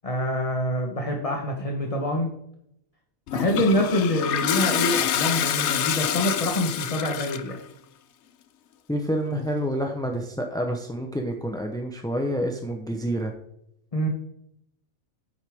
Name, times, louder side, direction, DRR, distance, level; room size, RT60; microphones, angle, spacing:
voice 1, 0.0-2.3 3.3-7.6 13.9-14.1, left 1 dB, 25° left, 1 dB, 1.2 m, -25 dB
Toilet flush, 3.3-7.6, left 9 dB, 65° left, 0.8 m, -26 dB
voice 2, 8.9-13.3, equal, 5° left, 2 dB, 0.6 m, -28 dB
9.5 x 8.0 x 3.6 m, 0.76 s
omnidirectional pair, 1.4 m